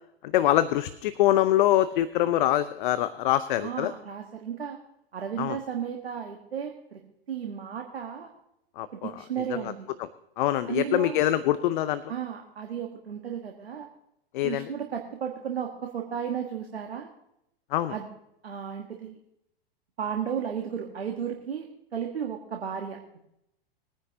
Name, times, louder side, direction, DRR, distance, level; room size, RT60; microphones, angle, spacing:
voice 1, 0.2-3.9 5.4-5.6 8.8-9.1 9.6-9.7 10.4-12.0 14.3-14.7 17.7-17.9, left 13 dB, 55° left, 13 dB, 0.7 m, -24 dB
voice 2, 3.6-4.8 5.1-7.0 7.3-8.3 8.9-9.9 10.7-11.2 12.1-13.9 14.4-17.1 17.9-18.1 18.4-19.2 20.0-21.7 21.9-23.2, right 8 dB, 80° right, 3 dB, 1.5 m, -34 dB
21.5 x 10.0 x 2.8 m, 0.81 s
hypercardioid pair, 105°, 30 cm